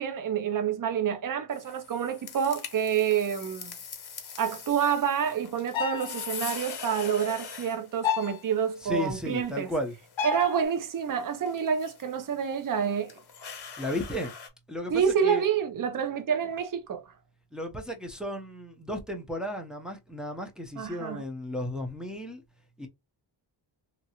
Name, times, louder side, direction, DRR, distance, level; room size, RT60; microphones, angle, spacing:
voice 1, 0.0-3.7 4.4-9.7 10.2-13.2 14.9-17.0 20.8-21.2, right 7 dB, 45° right, 0.6 m, -28 dB
sound 1, 1.5-14.5, left 6 dB, 60° left, 1.0 m, -43 dB
sound 2, 5.6-6.4 8.0-8.4 10.2-10.6, left 7 dB, 85° left, 0.7 m, -30 dB
voice 2, 8.8-9.9 13.8-14.3 14.7-15.4 17.5-22.4 22.8-22.9, left 1 dB, ahead, 0.7 m, -34 dB
2.9 x 2.6 x 2.8 m
wide cardioid pair, 90°, 45 cm